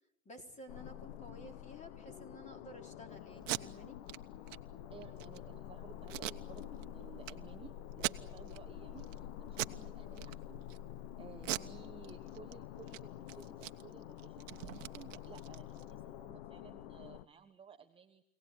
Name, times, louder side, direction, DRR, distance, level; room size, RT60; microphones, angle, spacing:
voice 1, 0.2-4.0 11.5-11.8, left 1 dB, 20° left, 5 dB, 4.2 m, -53 dB
sound 1, 0.7-17.3, left 11 dB, 50° left, 1.2 m, -48 dB
Packing tape duct tape, 3.3-3.6 4.1-4.2 4.5-4.6 5.0-5.4 6.1-6.9 7.2-7.3 7.9-8.6 9.0-9.2 9.5-9.8 10.1-10.8 11.4-12.5 12.8-13.0 13.3-15.9, right 15 dB, 65° right, 1.2 m, -40 dB
voice 2, 4.9-10.6 11.2-18.2, right 7 dB, 15° right, 5 dB, 1.1 m, -56 dB
25.5 x 18.5 x 9.7 m, 0.78 s
hypercardioid pair, 125°, 40 cm